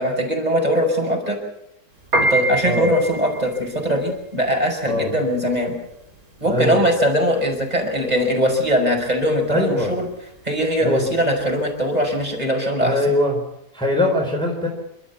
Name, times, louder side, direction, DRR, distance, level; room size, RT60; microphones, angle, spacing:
voice 1, 0.0-1.4 2.3-5.8 6.4-10.1 10.4-13.0, equal, 25° right, 1 dB, 5.7 m, -21 dB
Piano, 2.0-12.4, right 1 dB, 55° right, 4.7 m, -28 dB
voice 2, 6.4-6.8 9.5-9.9 10.8-11.1 12.8-13.4 13.7-14.7, left 1 dB, 5° left, 0 dB, 4.1 m, -21 dB
28.5 x 13.0 x 8.5 m, 0.82 s
omnidirectional pair, 1.8 m